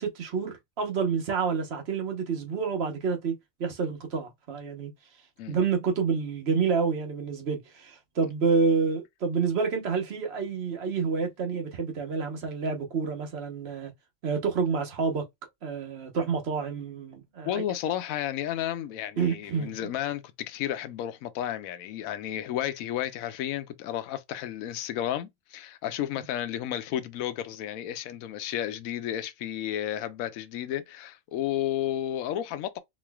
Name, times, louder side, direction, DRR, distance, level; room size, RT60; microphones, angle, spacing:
voice 1, 0.0-3.3 3.6-4.9 5.5-13.9 14.2-15.3 15.6-17.6 19.2-19.9, right 5 dB, 50° right, 1.1 m, -28 dB
voice 2, 17.5-32.8, left 11 dB, 80° left, 1.0 m, -32 dB
4.1 x 3.1 x 2.2 m
omnidirectional pair, 1.4 m